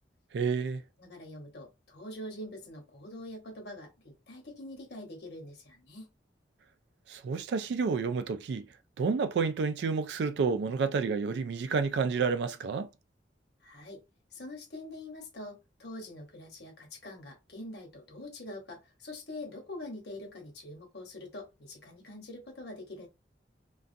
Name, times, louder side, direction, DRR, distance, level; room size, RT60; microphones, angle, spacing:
voice 1, 0.3-0.8 7.1-8.7 9.0-12.9, right 5 dB, 70° right, 0.3 m, -30 dB
voice 2, 1.0-6.1 13.6-14.0 14.3-23.1, left 1 dB, 65° left, 1.0 m, -44 dB
2.4 x 2.3 x 2.6 m
head